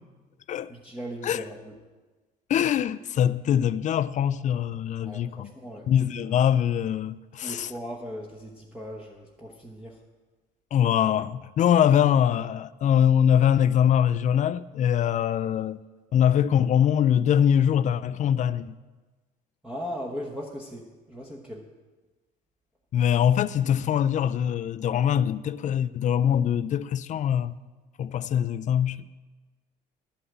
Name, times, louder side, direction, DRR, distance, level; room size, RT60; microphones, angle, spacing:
voice 1, 0.7-1.7 5.0-5.9 7.4-10.0 19.6-21.6, equal, 5° right, 1.1 m, -38 dB
voice 2, 2.5-5.5 5.9-7.7 10.7-15.8 16.1-18.8 22.9-27.5 28.0-29.1, left 9 dB, 45° left, 0.4 m, -23 dB
11.5 x 5.7 x 7.9 m
cardioid pair, 110°, 17 cm